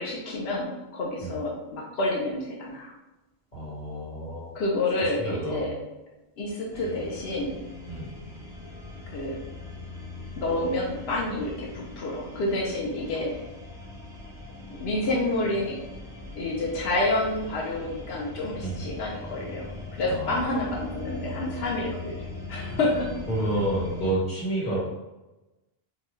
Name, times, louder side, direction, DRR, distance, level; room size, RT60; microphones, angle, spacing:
voice 1, 0.0-2.9 4.5-5.7 6.4-7.6 9.1-9.4 10.4-13.4 14.7-15.8 16.4-19.7 20.0-23.1, left 2 dB, 75° left, -3 dB, 1.0 m, -29 dB
voice 2, 3.5-4.5 5.0-5.7 7.9-8.1 18.6-18.8 20.1-20.4 22.7-22.8 23.3-24.8, right 1 dB, 45° left, -7 dB, 1.5 m, -30 dB
sound 1, 6.7-24.1, left 2 dB, 5° right, 0.5 m, -40 dB
4.8 x 2.3 x 3.1 m, 1.1 s
omnidirectional pair, 1.1 m